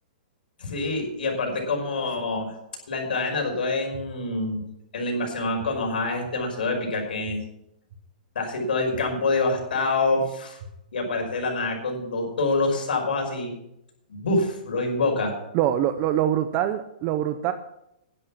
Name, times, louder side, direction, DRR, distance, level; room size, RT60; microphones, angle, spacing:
voice 1, 0.6-2.5 2.9-4.6 4.9-7.4 8.4-10.6 10.9-13.5 14.1-15.3, left 3 dB, 85° left, 2 dB, 5.4 m, -26 dB
sound 1, 3.9-4.0 4.6-4.7 5.6-5.7 6.2-6.3 7.2-7.3 7.9-8.0 8.9-9.0 9.6-9.7 10.6-10.7 11.2-11.3, right 7 dB, 45° right, 4.5 m, -42 dB
voice 2, 15.5-17.5, right 11 dB, 25° right, 11 dB, 0.5 m, -24 dB
11.5 x 10.5 x 6.0 m, 0.82 s
hypercardioid pair, 170°, 5 cm